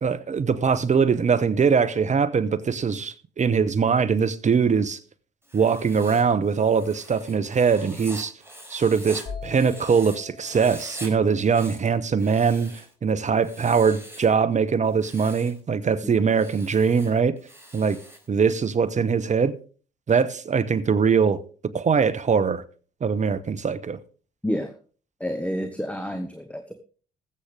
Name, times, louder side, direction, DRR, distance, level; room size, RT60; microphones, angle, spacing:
voice 1, 0.0-5.0 5.5-8.3 8.7-17.3 17.7-18.0 18.3-19.5 20.1-21.4 21.7-22.6 23.0-24.0, right 6 dB, 35° right, 1.1 m, -22 dB
Writing, 5.4-10.2 10.4-11.1 11.4-12.9 13.4-14.4 14.9-15.6 16.3-18.3, right 1 dB, 10° right, 4.4 m, -43 dB
sound 1, 9.3-13.0, left 4 dB, 60° left, 4.2 m, -43 dB
voice 2, 25.2-26.7, equal, 5° left, 1.4 m, -29 dB
20.0 x 8.1 x 3.4 m
hypercardioid pair, 55°, 21 cm